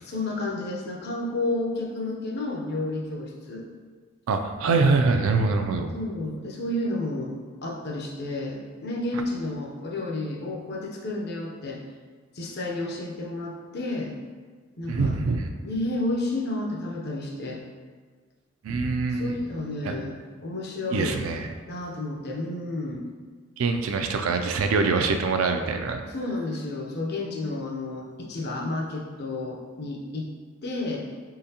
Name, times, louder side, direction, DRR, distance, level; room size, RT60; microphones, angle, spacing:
voice 1, 0.0-3.7 5.9-11.8 12.3-14.1 14.8-15.2 15.6-17.6 19.1-20.2 20.4-21.2 21.7-23.1 26.1-30.3 30.6-31.1, left 2 dB, 50° left, -1 dB, 0.6 m, -31 dB
voice 2, 4.3-5.9 14.9-15.5 18.6-19.3 20.9-21.5 23.6-26.0, right 4 dB, 70° right, 5 dB, 0.4 m, -24 dB
3.8 x 3.3 x 2.8 m, 1.5 s
head